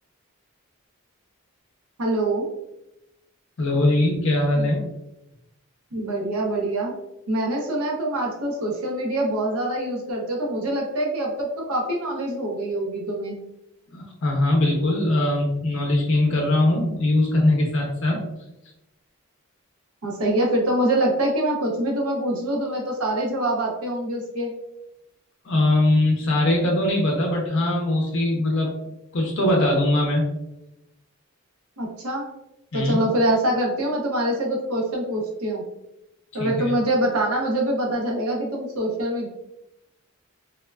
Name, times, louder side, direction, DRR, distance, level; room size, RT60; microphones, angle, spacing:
voice 1, 2.0-2.5 4.5-4.7 5.9-6.9 7.3-13.4 20.0-24.5 31.8-32.3 32.7-35.6 36.3-39.3, right 1 dB, 90° right, 0 dB, 0.6 m, -24 dB
voice 2, 3.6-4.8 13.9-18.3 25.4-28.7 29.1-30.3 32.7-33.0 36.4-36.7, left 1 dB, 55° left, 0 dB, 0.5 m, -21 dB
3.5 x 2.2 x 2.2 m, 0.89 s
head